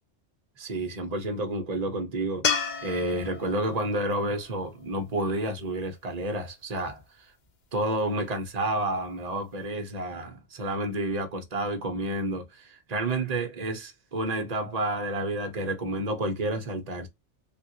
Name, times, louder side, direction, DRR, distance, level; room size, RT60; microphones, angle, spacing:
voice 1, 0.6-7.0 7.7-17.1, right 1 dB, 35° right, 1.0 m, -30 dB
sound 1, 2.4-5.7 8.9-9.0, left 6 dB, 50° left, 0.6 m, -33 dB
3.5 x 2.5 x 2.9 m
omnidirectional pair, 1.2 m